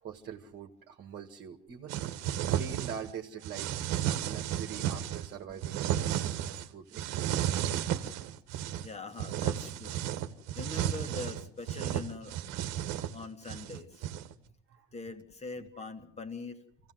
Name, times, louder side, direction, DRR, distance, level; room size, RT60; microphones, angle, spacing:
voice 1, 0.0-2.0 2.5-3.7 4.2-7.5 14.7-14.9 15.6-15.7, right 7 dB, 35° right, 5 dB, 1.9 m, -44 dB
sound 1, 1.9-3.1 3.4-5.3 5.6-6.7 6.9-8.9 9.2-14.3, right 11 dB, 55° right, 1.6 m, -33 dB
voice 2, 8.7-10.0 10.5-12.4 13.1-14.0 14.9-16.6, left 3 dB, 20° left, 7 dB, 2.2 m, -42 dB
25.5 x 16.5 x 7.9 m, 0.62 s
supercardioid pair, 135°, 32 cm